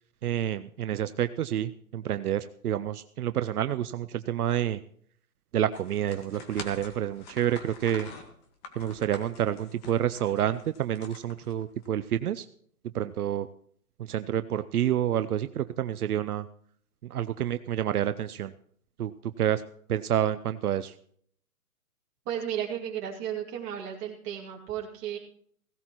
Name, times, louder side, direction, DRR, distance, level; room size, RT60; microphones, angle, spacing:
voice 1, 0.2-4.8 5.5-8.1 8.8-12.4 13.0-13.5 14.1-16.4 17.1-18.5 19.0-19.1 19.4-19.6 19.9-20.9, right 11 dB, 75° right, 12 dB, 0.6 m, -28 dB
sound 1, 5.7-11.8, left 4 dB, 25° left, 1.6 m, -46 dB
voice 2, 22.3-25.2, right 9 dB, 25° right, -2 dB, 2.3 m, -34 dB
16.5 x 16.5 x 3.0 m, 0.63 s
hypercardioid pair, 150°, 46 cm